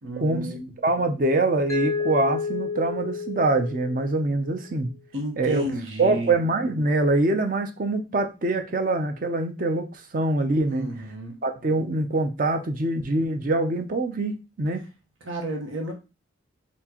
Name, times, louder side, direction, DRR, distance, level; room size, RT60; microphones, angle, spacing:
voice 1, 0.0-0.8 5.1-6.3 10.7-11.4 15.2-15.9, right 1 dB, 80° right, 2 dB, 1.1 m, -32 dB
voice 2, 0.8-4.9 5.4-5.6 6.0-10.9 11.4-14.8, right 2 dB, 45° right, 7 dB, 0.5 m, -24 dB
Mallet percussion, 1.7-4.6, left 5 dB, 15° left, 0.4 m, -30 dB
4.3 x 3.5 x 2.9 m, 0.29 s
head